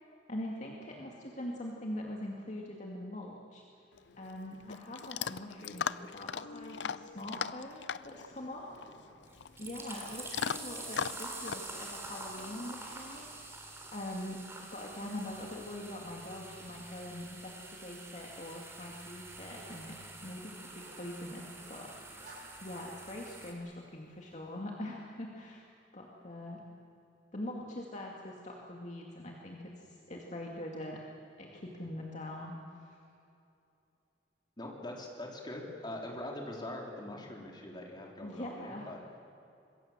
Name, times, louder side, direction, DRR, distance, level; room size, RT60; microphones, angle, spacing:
voice 1, 0.3-3.6 4.2-8.7 9.6-14.4 14.7-25.6 25.9-26.6 27.3-31.0 31.4-33.0 38.2-38.9, left 1 dB, 45° left, -1 dB, 2.4 m, -43 dB
Chewing mastication / Dog, 3.9-13.1, left 7 dB, 85° left, 0.6 m, -40 dB
Zipper (clothing), 8.1-24.6, right 1 dB, 45° right, 7.6 m, -62 dB
voice 2, 8.7-9.2 34.6-39.0, left 1 dB, 25° left, -1 dB, 3.9 m, -43 dB
sound 1, 9.3-23.5, right 2 dB, 15° right, 3.4 m, -47 dB
26.0 x 21.5 x 7.6 m, 2.7 s
head